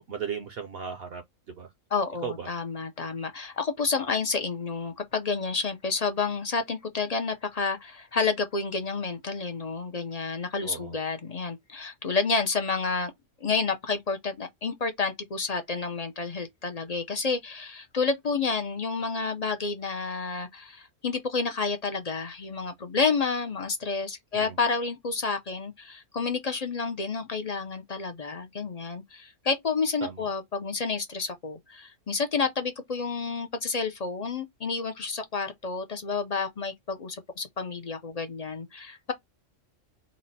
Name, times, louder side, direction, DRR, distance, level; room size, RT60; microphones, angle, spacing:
voice 1, 0.0-1.7 2.2-2.5 10.6-11.0 24.3-24.6 30.0-30.3, right 7 dB, 60° right, 0.7 m, -36 dB
voice 2, 1.9-13.1 13.4-39.1, left 4 dB, 45° left, 0.5 m, -30 dB
4.0 x 2.1 x 3.9 m
omnidirectional pair, 1.3 m